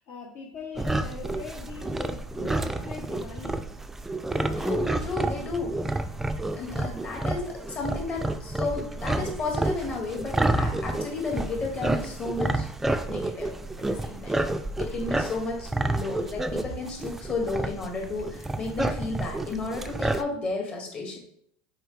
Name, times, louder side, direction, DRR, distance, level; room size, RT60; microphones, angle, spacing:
voice 1, 0.0-3.6, left 5 dB, 55° left, 0 dB, 1.2 m, -41 dB
sound 1, 0.8-20.2, right 2 dB, 5° right, 0.4 m, -30 dB
voice 2, 4.6-5.7 6.6-12.7 13.1-13.5 13.8-14.4 14.8-21.2, left 3 dB, 30° left, 1 dB, 1.9 m, -33 dB
6.2 x 4.9 x 3.3 m, 0.66 s
supercardioid pair, 125°, 4 cm